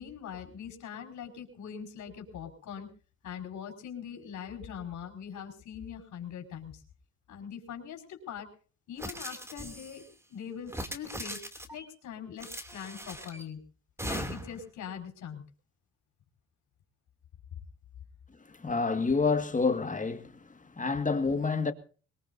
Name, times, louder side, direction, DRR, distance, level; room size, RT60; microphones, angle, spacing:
voice 1, 0.0-2.9 3.2-6.8 7.3-8.5 8.9-10.0 10.3-11.4 11.7-12.5 12.7-13.6 14.0-15.4, left 8 dB, 70° left, 5.0 m, -42 dB
sound 1, 9.0-10.0 10.7-11.8 12.4-13.4 14.0-14.6, equal, 10° right, 2.7 m, -39 dB
voice 2, 18.5-21.7, left 4 dB, 25° left, 1.9 m, -28 dB
22.5 x 21.5 x 2.7 m
cardioid pair, 90°, 30 cm